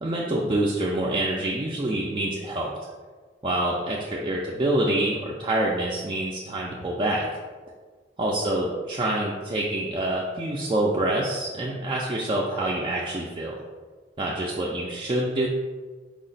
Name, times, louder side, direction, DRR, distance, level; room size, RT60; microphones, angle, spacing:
voice 1, 0.0-2.7 3.4-7.2 8.2-13.6 14.2-15.5, right 1 dB, 25° right, -4 dB, 0.3 m, -26 dB
4.7 x 2.1 x 3.9 m, 1.4 s
head